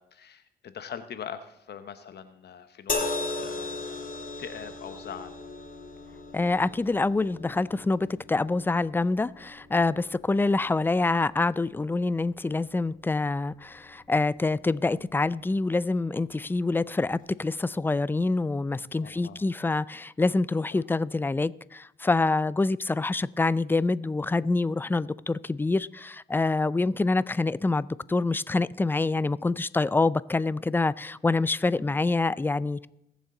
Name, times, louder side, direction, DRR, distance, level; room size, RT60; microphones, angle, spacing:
voice 1, 0.0-4.1 4.4-5.4 19.0-19.4 20.7-20.8 31.8-32.1, left 8 dB, 65° left, 0.9 m, -42 dB
sound 1, 2.9-16.2 17.2-17.4, left 3 dB, 45° left, 2.1 m, -39 dB
voice 2, 6.3-32.9, left 3 dB, 10° left, 0.3 m, -26 dB
21.0 x 7.2 x 3.8 m
cardioid pair, 80°, 19 cm